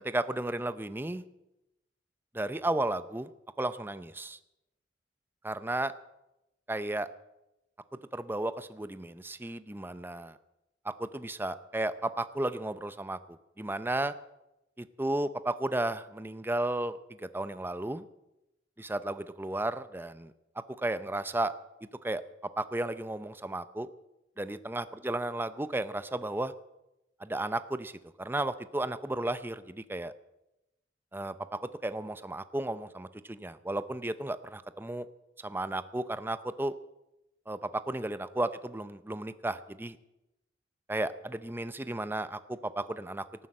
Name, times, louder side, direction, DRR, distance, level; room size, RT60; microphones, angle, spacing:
voice 1, 0.0-1.2 2.3-3.3 3.6-4.4 5.4-5.9 6.7-7.1 8.1-10.4 11.0-14.1 14.8-18.0 18.8-20.3 20.7-21.5 22.0-22.2 22.6-23.9 24.4-26.5 27.2-27.9 28.2-30.1 31.1-35.1 35.4-36.8 37.5-40.0 40.9-43.2, right 1 dB, 10° right, 13 dB, 0.6 m, -33 dB
18.5 x 9.6 x 7.6 m, 0.91 s
head